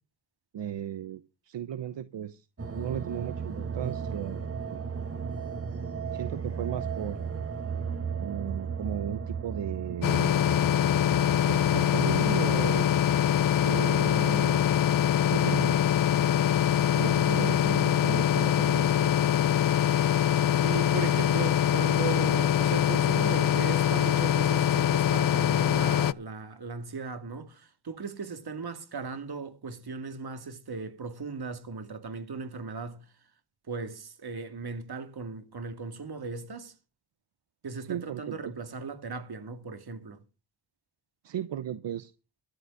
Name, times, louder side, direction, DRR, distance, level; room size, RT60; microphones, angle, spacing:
voice 1, 0.5-2.5 2.7-4.8 6.1-7.2 8.2-10.3 11.5-12.9 13.6-14.6 15.3-15.8 16.9-19.1 37.8-38.4 41.2-42.1, right 10 dB, 80° right, 0.9 m, -35 dB
sound 1, 2.6-18.7, right 6 dB, 30° right, 1.7 m, -37 dB
sound 2, 10.0-26.1, left 10 dB, 50° left, 0.5 m, -24 dB
voice 2, 20.6-33.0 33.7-36.7 37.6-40.2, right 4 dB, 60° right, 2.4 m, -37 dB
13.0 x 8.5 x 6.5 m
cardioid pair, 70°, 43 cm